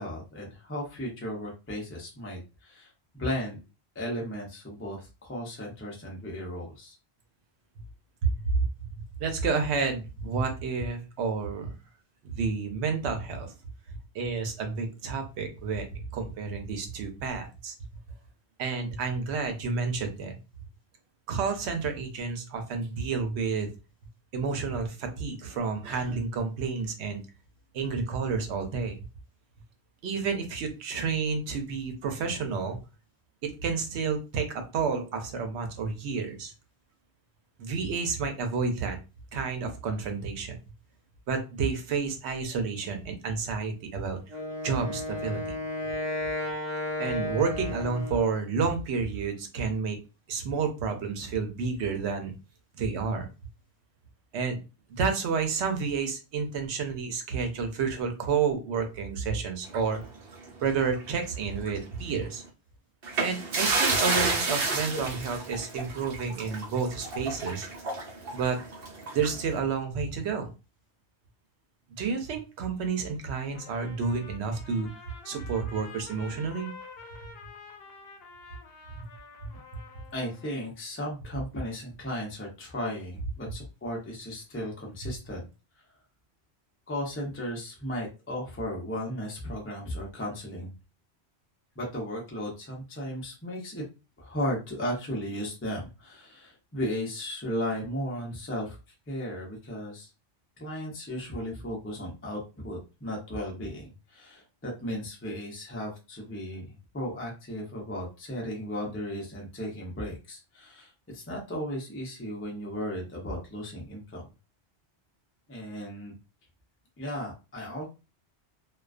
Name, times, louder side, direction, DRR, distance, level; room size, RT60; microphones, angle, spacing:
voice 1, 0.0-3.6 3.9-7.0 80.1-85.5 86.9-90.7 91.8-93.8 94.2-98.8 99.1-100.1 100.6-114.3 115.5-116.1 117.0-117.9, equal, 15° left, -2 dB, 0.4 m, -35 dB
voice 2, 9.2-11.7 12.2-13.5 14.1-17.7 18.6-20.4 21.3-23.7 24.3-27.2 27.7-29.0 30.0-32.8 33.4-36.5 37.6-39.0 39.3-40.6 41.3-44.2 44.6-45.6 47.0-50.0 50.3-52.3 52.7-53.3 54.3-54.6 54.9-60.0 60.6-62.4 63.2-67.7 68.3-68.6 69.1-70.5 72.0-74.9 75.2-76.7, right 5 dB, 90° right, 5 dB, 0.9 m, -30 dB
Wind instrument woodwind instrument, 44.3-48.5, left 1 dB, 40° right, 0.6 m, -33 dB
sound 1, 59.7-61.2 61.6-61.8 63.0-69.5, right 3 dB, 65° right, 0.9 m, -31 dB
Trumpet, 73.5-80.7, left 4 dB, 70° left, 0.8 m, -48 dB
2.3 x 2.3 x 2.4 m, 0.29 s
omnidirectional pair, 1.1 m